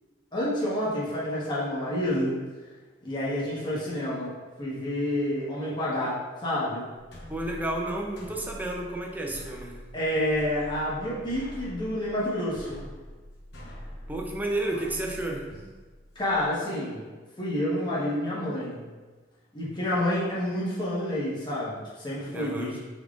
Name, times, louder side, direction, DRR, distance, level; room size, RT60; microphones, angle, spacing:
voice 1, 0.3-2.4 3.0-6.9 9.9-12.8 16.1-17.0 17.4-18.9 19.5-22.8, left 1 dB, 25° left, -8 dB, 1.1 m, -29 dB
sound 1, 7.0-16.5, equal, 65° left, 0.9 m, -45 dB
voice 2, 7.3-9.8 14.1-15.5 22.3-22.8, right 1 dB, 10° right, 0 dB, 0.5 m, -31 dB
5.3 x 3.6 x 2.5 m, 1.3 s
head